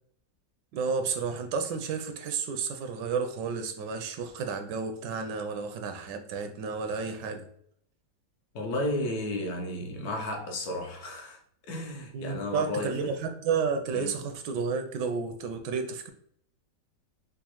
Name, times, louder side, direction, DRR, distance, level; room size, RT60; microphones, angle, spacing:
voice 1, 0.7-7.5 12.1-16.1, right 5 dB, 80° right, 1.2 m, -31 dB
voice 2, 8.5-11.4 11.7-13.1 13.9-14.2, left 1 dB, 65° left, 1.2 m, -33 dB
5.2 x 2.0 x 2.9 m
omnidirectional pair, 1.9 m